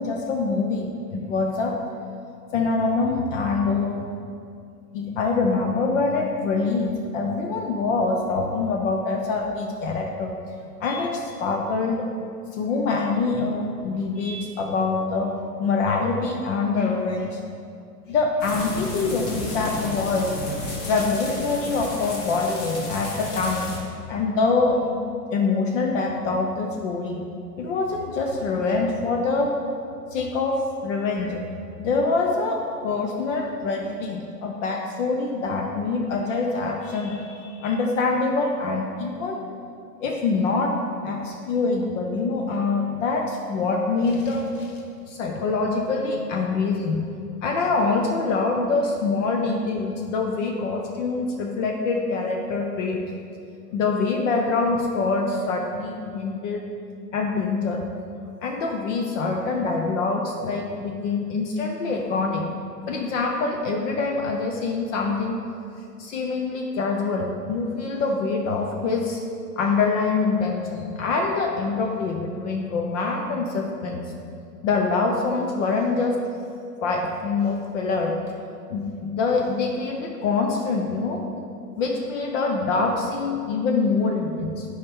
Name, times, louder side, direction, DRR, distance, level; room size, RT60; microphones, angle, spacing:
voice 1, 0.0-1.8 2.5-4.1 4.9-10.3 10.8-12.1 12.5-15.3 15.6-17.4 18.1-20.5 20.9-23.7 24.1-25.0 25.3-27.2 27.6-29.5 30.1-31.4 31.8-39.4 40.0-40.7 41.0-44.7 45.1-47.0 47.4-53.0 53.7-56.6 57.1-57.8 58.4-62.5 62.9-65.4 66.0-69.2 69.6-74.0 74.6-76.2 76.8-78.2 78.7-81.2 81.8-84.7, left 4 dB, 50° left, 1 dB, 0.8 m, -25 dB
sound 1, 18.4-23.8, left 2 dB, 30° left, 1.4 m, -33 dB
8.6 x 4.7 x 3.6 m, 2.4 s
hypercardioid pair, 105°, 48 cm